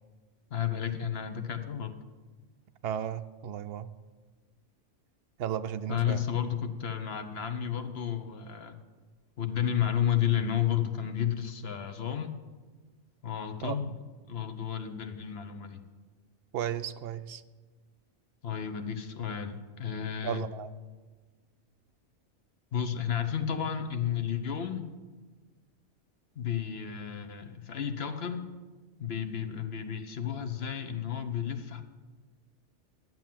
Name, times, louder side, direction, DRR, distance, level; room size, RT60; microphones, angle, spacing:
voice 1, 0.5-2.0 5.9-8.8 9.4-12.3 13.2-13.9 14.3-15.8 18.4-20.4 22.7-24.9 26.4-28.5 29.0-31.8, left 9 dB, 60° left, 8 dB, 1.1 m, -32 dB
voice 2, 2.8-3.9 5.4-6.2 13.6-13.8 16.5-17.4 20.2-20.7, right 10 dB, 65° right, 10 dB, 0.7 m, -34 dB
10.5 x 7.4 x 7.5 m, 1.3 s
omnidirectional pair, 1.2 m